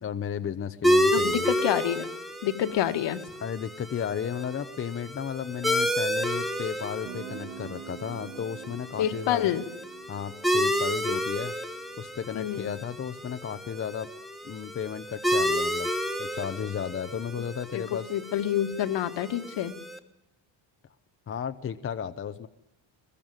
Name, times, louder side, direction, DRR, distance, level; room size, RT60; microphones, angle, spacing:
voice 1, 0.0-1.5 3.4-9.5 10.1-11.5 12.0-14.1 14.4-15.9 16.2-18.1 21.3-22.5, left 8 dB, 30° left, 9 dB, 0.9 m, -34 dB
sound 1, 0.8-20.0, equal, ahead, 1.3 m, -30 dB
voice 2, 1.1-2.1 2.4-3.2 9.0-9.6 12.3-12.7 17.7-17.8 18.1-19.8, left 10 dB, 65° left, 7 dB, 2.1 m, -27 dB
Guitar, 7.1-12.6, right 10 dB, 70° right, 2.8 m, -46 dB
22.0 x 22.0 x 9.0 m, 0.83 s
cardioid pair, 175°, 46 cm